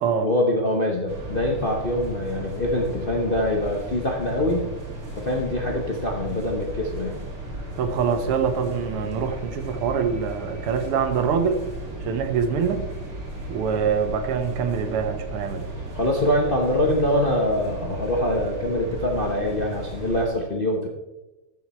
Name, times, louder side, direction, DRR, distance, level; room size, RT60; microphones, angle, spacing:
voice 1, 0.2-4.7 5.2-7.2 15.9-20.9, left 1 dB, 40° left, 0 dB, 0.8 m, -24 dB
sound 1, 1.1-20.2, right 1 dB, 40° right, 2.3 m, -35 dB
voice 2, 7.8-11.7 12.0-12.9 13.5-15.7, right 6 dB, 85° right, 8 dB, 1.9 m, -24 dB
13.5 x 6.5 x 4.3 m, 1.1 s
omnidirectional pair, 2.4 m